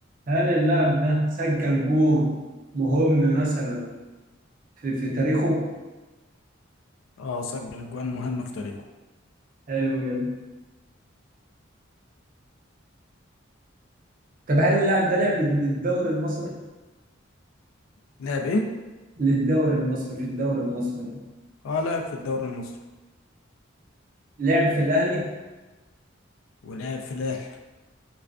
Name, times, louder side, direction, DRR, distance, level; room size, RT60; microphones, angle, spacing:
voice 1, 0.3-2.4 2.7-3.9 4.8-5.7 9.7-10.3 14.5-16.5 19.2-21.2 24.4-25.3, right 1 dB, 40° right, -3 dB, 0.4 m, -23 dB
voice 2, 7.2-8.8 18.2-18.7 21.6-22.8 26.6-27.6, left 3 dB, 85° left, 4 dB, 0.3 m, -29 dB
2.3 x 2.3 x 2.3 m, 1.2 s
head